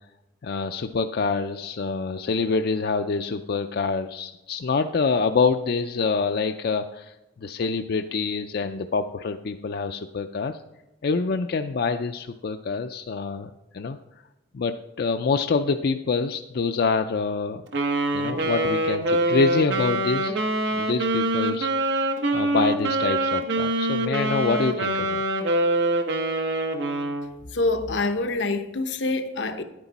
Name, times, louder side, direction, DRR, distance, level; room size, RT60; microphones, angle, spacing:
voice 1, 0.4-10.6 11.0-14.0 14.5-17.6 18.1-20.4 20.7-22.0 22.3-25.2, left 4 dB, 60° left, 0.4 m, -26 dB
Wind instrument woodwind instrument, 17.7-27.3, right 1 dB, 90° right, 1.3 m, -24 dB
voice 2, 27.5-29.6, left 2 dB, 85° left, 0.9 m, -26 dB
10.5 x 9.7 x 4.1 m
head